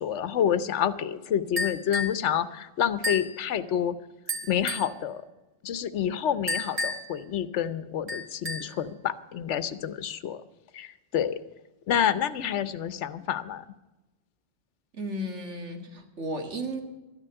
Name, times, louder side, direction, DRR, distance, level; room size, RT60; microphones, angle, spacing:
voice 1, 0.0-4.0 4.5-5.2 5.6-10.4 10.7-11.4 11.9-13.6, left 9 dB, 85° left, 14 dB, 1.1 m, -28 dB
sound 1, 1.6-2.2 3.0-3.4 4.3-4.9 6.5-7.2 8.1-8.8, left 2 dB, 30° right, 1.8 m, -31 dB
voice 2, 14.9-16.8, right 1 dB, 90° right, 4 dB, 2.2 m, -34 dB
13.0 x 9.9 x 7.8 m, 1.1 s
omnidirectional pair, 1.2 m